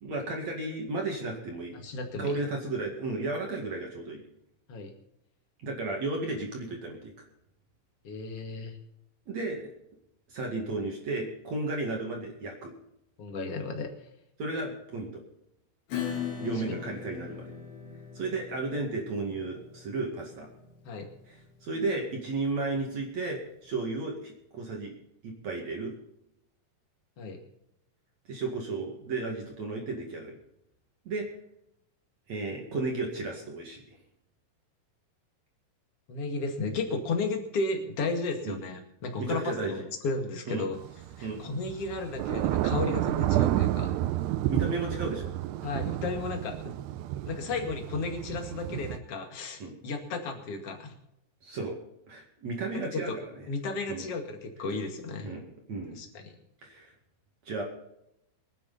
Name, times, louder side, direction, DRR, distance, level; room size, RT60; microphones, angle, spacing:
voice 1, 0.0-1.8 2.2-4.2 5.6-7.1 9.3-9.7 10.3-12.7 14.4-15.2 16.4-17.4 18.1-20.5 21.3-24.9 25.2-26.0 28.3-30.4 31.0-31.2 32.3-34.0 38.4-38.6 39.2-39.8 40.5-40.6 41.2-41.4 44.5-45.3 49.6-49.7 51.4-51.8 52.1-53.4 53.9-54.0 55.2-56.0 56.6-56.9 57.4-57.6, right 3 dB, 45° right, 0 dB, 2.8 m, -34 dB
voice 2, 1.7-2.3 4.7-4.9 8.0-8.8 13.2-13.9 16.7-16.8 20.9-21.1 27.2-27.4 36.1-40.8 41.2-44.0 45.6-46.7 47.3-50.9 52.7-53.1 53.5-55.3 56.0-56.3, left 3 dB, 40° left, 3 dB, 2.5 m, -34 dB
Acoustic guitar / Strum, 15.9-23.1, left 8 dB, 85° left, 5.2 m, -40 dB
Thunder / Rain, 40.7-49.0, right 14 dB, 80° right, 2.7 m, -30 dB
24.0 x 9.9 x 4.1 m, 0.82 s
omnidirectional pair, 5.0 m